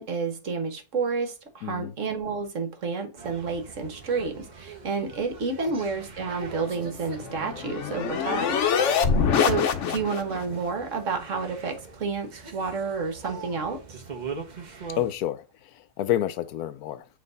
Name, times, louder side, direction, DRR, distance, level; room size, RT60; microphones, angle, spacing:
voice 1, 0.0-8.6 9.4-13.8, right 4 dB, 55° right, 1.5 m, -30 dB
voice 2, 1.6-1.9 5.6-5.7 9.8-10.0 15.0-17.1, left 12 dB, 80° left, 1.1 m, -29 dB
sound 1, 3.2-15.1, right 5 dB, 35° right, 0.8 m, -42 dB
sound 2, 6.8-10.4, left 6 dB, 60° left, 1.0 m, -25 dB
7.6 x 3.2 x 3.9 m
omnidirectional pair, 1.6 m